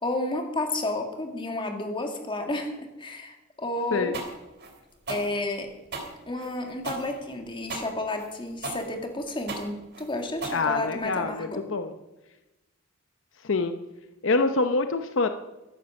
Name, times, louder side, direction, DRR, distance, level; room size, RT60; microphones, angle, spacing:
voice 1, 0.0-4.1 5.1-5.7 6.3-11.6, left 2 dB, 25° left, 4 dB, 2.2 m, -31 dB
sound 1, 4.1-11.2, right 3 dB, 55° right, 3.2 m, -37 dB
voice 2, 10.5-11.9 13.4-13.8 14.2-15.3, left 3 dB, 65° left, 8 dB, 0.8 m, -25 dB
14.5 x 11.5 x 6.4 m, 1.0 s
head